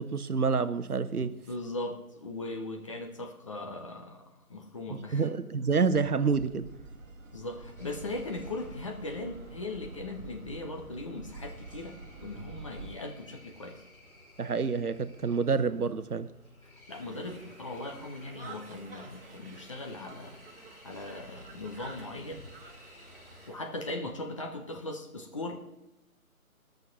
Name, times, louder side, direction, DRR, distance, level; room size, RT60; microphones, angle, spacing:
voice 1, 0.0-1.4 4.9-6.7 14.4-16.3, right 5 dB, 90° right, 0.9 m, -28 dB
voice 2, 1.2-5.3 7.3-11.9 12.2-13.8 16.9-20.4 20.8-22.4 23.5-25.6, left 2 dB, 20° left, 0.8 m, -39 dB
sound 1, 5.9-13.0, right 3 dB, 60° right, 1.4 m, -47 dB
sound 2, 7.8-23.5, left 1 dB, 70° left, 4.4 m, -55 dB
Conversation, 16.9-23.6, right 4 dB, 40° right, 1.6 m, -51 dB
18.5 x 6.6 x 5.7 m
figure-of-eight pair, 150°, 44 cm